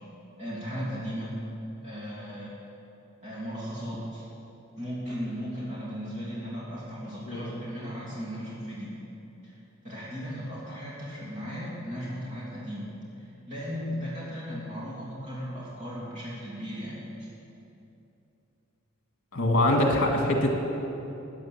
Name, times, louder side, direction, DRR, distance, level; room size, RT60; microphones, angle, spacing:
voice 1, 0.4-1.3 1.8-2.5 3.2-4.2 4.7-9.0 9.4-9.6 9.8-12.9 13.2-17.3, equal, 30° right, -7 dB, 3.1 m, -36 dB
voice 2, 19.3-20.5, left 1 dB, 50° left, 2 dB, 1.9 m, -23 dB
14.0 x 9.5 x 7.3 m, 2.9 s
head